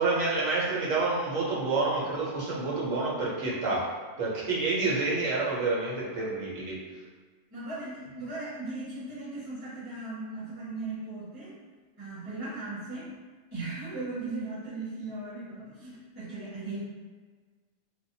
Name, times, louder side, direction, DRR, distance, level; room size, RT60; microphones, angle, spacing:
voice 1, 0.0-3.9 4.2-6.8, right 3 dB, 90° right, -5 dB, 1.2 m, -28 dB
voice 2, 7.5-11.5 12.0-13.1 13.5-16.8, right 2 dB, 20° right, -14 dB, 1.4 m, -37 dB
3.4 x 2.2 x 2.6 m, 1.4 s
omnidirectional pair, 1.3 m